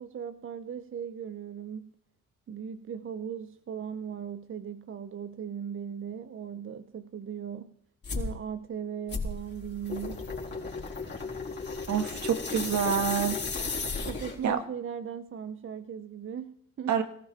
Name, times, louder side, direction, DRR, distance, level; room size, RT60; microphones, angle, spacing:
voice 1, 0.0-1.9 2.5-7.7 8.1-10.3 14.0-17.0, right 8 dB, 45° right, 10 dB, 0.8 m, -38 dB
sound 1, 8.0-8.3 9.1-14.5, left 4 dB, 35° left, 4.6 m, -34 dB
voice 2, 11.9-13.4 14.4-14.6 16.9-17.0, right 8 dB, 70° right, 7 dB, 1.9 m, -27 dB
19.0 x 15.5 x 4.4 m, 0.67 s
cardioid pair, 90°, 30 cm